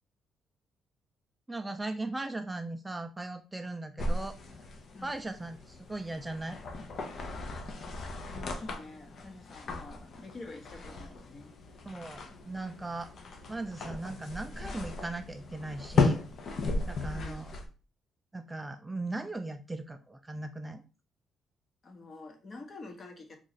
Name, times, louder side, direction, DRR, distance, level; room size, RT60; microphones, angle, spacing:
voice 1, 1.5-4.4 5.0-6.6 11.9-13.1 13.5-16.2 16.9-17.5 18.3-20.8, right 2 dB, 15° right, 7 dB, 0.3 m, -38 dB
sound 1, 4.0-17.7, left 3 dB, 60° left, 0.7 m, -35 dB
voice 2, 8.3-11.5 17.0-17.5 21.8-23.4, left 2 dB, 40° left, 4 dB, 1.0 m, -47 dB
3.0 x 2.4 x 4.0 m, 0.33 s
cardioid pair, 90°, 0 cm